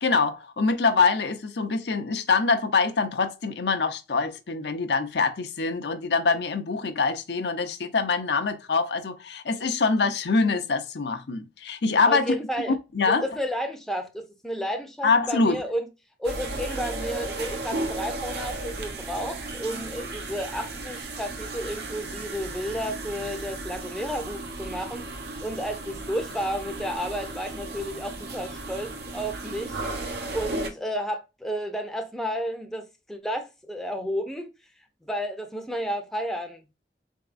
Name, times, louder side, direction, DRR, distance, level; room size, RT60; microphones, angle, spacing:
voice 1, 0.0-12.4 12.7-13.2 15.0-15.6, left 4 dB, 70° left, 0.6 m, -24 dB
voice 2, 12.1-12.8 13.1-15.9 16.2-25.1 25.4-29.8 30.3-34.5 35.1-36.6, equal, ahead, 0.6 m, -32 dB
sound 1, 16.2-30.7, right 2 dB, 65° right, 0.8 m, -35 dB
4.1 x 3.5 x 2.5 m
head